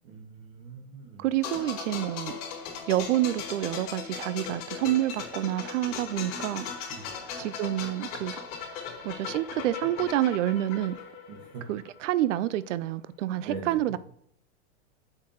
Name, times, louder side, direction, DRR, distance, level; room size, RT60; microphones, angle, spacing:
voice 1, 0.0-1.2 6.9-7.1 11.3-11.6 13.4-14.0, right 5 dB, 45° right, 1.7 m, -42 dB
voice 2, 1.2-2.4 2.9-6.7 7.4-8.4 9.0-11.0 11.7-14.0, right 13 dB, 75° right, 0.5 m, -28 dB
sound 1, 1.4-12.0 12.3-12.5, left 6 dB, 55° left, 3.0 m, -38 dB
7.2 x 6.7 x 3.0 m
supercardioid pair, 165°, 37 cm